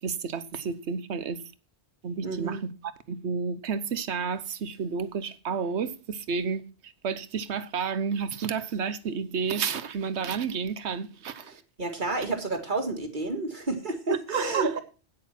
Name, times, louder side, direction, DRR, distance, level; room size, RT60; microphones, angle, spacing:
voice 1, 0.0-1.4 2.0-11.6 14.1-14.8, right 6 dB, 80° right, 1.2 m, -31 dB
voice 2, 2.2-2.6 11.8-14.8, right 2 dB, 45° right, 2.1 m, -30 dB
9.4 x 8.8 x 5.8 m
omnidirectional pair, 1.1 m